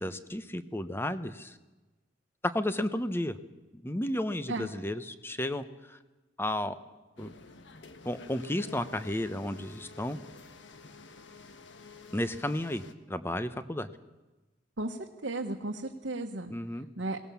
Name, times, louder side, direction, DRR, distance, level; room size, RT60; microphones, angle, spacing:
voice 1, 0.0-1.5 2.4-3.4 3.7-5.6 6.4-6.7 7.2-7.3 8.0-10.2 12.1-13.9 16.5-16.9, left 1 dB, 15° left, 12 dB, 1.0 m, -32 dB
sound 1, 7.2-12.9, left 3 dB, 85° left, 1.5 m, -51 dB
voice 2, 14.8-16.5 17.0-17.2, right 2 dB, 85° right, 0 dB, 1.5 m, -34 dB
22.5 x 18.5 x 7.1 m, 1.1 s
head